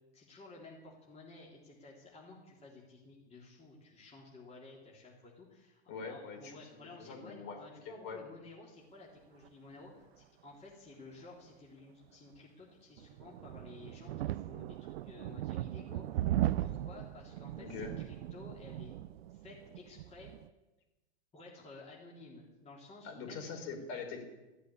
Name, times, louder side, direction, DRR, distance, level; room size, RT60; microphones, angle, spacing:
voice 1, 0.1-16.3 16.6-18.9 19.3-20.3 21.3-23.6, left 3 dB, 20° left, -3 dB, 3.6 m, -53 dB
voice 2, 5.9-6.6 7.0-7.6 7.8-8.2 17.6-17.9 23.0-24.2, left 5 dB, 50° left, 3 dB, 4.8 m, -43 dB
sound 1, 13.0-20.5, right 14 dB, 65° right, 0.6 m, -38 dB
14.5 x 8.4 x 9.8 m, 1.1 s
hypercardioid pair, 120°, 33 cm